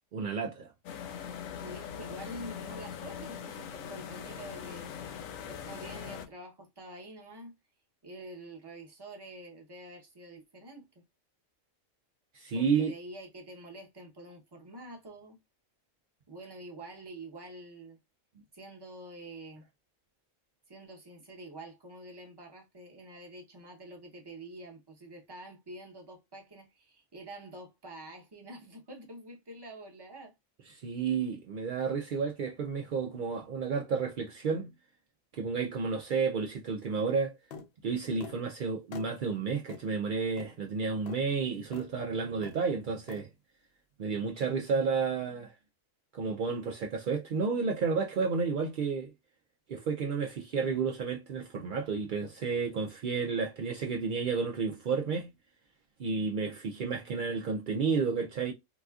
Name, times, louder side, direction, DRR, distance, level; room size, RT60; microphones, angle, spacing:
voice 1, 0.1-0.7 12.3-12.9 30.7-34.7 35.3-37.4 37.8-43.3 44.0-45.5 46.1-49.1 49.7-55.3 56.0-58.5, right 5 dB, 70° right, 0.4 m, -31 dB
sound 1, 0.8-6.3, left 8 dB, 85° left, 1.0 m, -41 dB
voice 2, 1.6-4.9 5.4-7.5 8.0-10.9 12.5-15.4 16.3-18.0 18.5-19.7 20.7-30.3, right 1 dB, 20° right, 0.7 m, -47 dB
sound 2, 37.5-37.7 38.2-38.4 38.9-39.1 39.7-39.8 40.4-40.5 41.1-41.2 41.7-41.9 42.4-42.6 43.1-43.2, left 5 dB, 60° left, 0.7 m, -44 dB
4.0 x 2.4 x 2.3 m
omnidirectional pair, 1.4 m